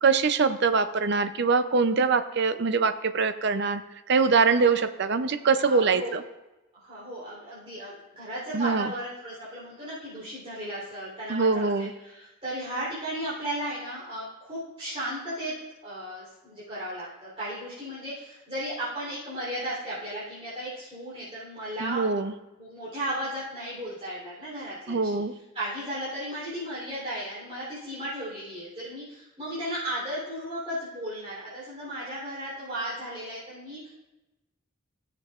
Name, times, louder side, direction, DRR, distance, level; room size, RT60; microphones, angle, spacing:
voice 1, 0.0-3.8 4.1-6.2 8.5-8.9 11.3-11.9 21.8-22.3 24.9-25.3, right 4 dB, 50° right, 10 dB, 0.5 m, -23 dB
voice 2, 5.5-6.2 6.7-15.5 15.8-22.2 22.6-33.9, right 1 dB, 30° right, -9 dB, 3.4 m, -35 dB
17.0 x 6.8 x 2.4 m, 1.0 s
head